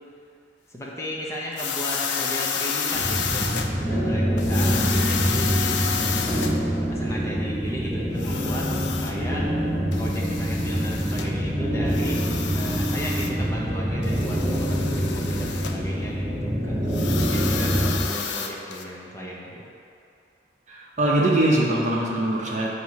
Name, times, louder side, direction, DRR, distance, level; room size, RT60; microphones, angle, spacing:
voice 1, 0.7-5.8 6.8-9.5 9.9-12.2 12.5-16.8 17.1-19.7, equal, 15° left, -4 dB, 0.6 m, -34 dB
sound 1, 1.5-3.7 4.4-6.6 8.1-9.1 9.9-11.3 11.9-13.3 14.0-15.8 16.9-18.8, left 6 dB, 85° left, 0.4 m, -30 dB
sound 2, 2.9-18.0, equal, 20° right, 1.2 m, -25 dB
voice 2, 20.7-22.7, right 1 dB, 40° right, -3 dB, 0.8 m, -22 dB
8.0 x 2.7 x 4.7 m, 2.6 s
head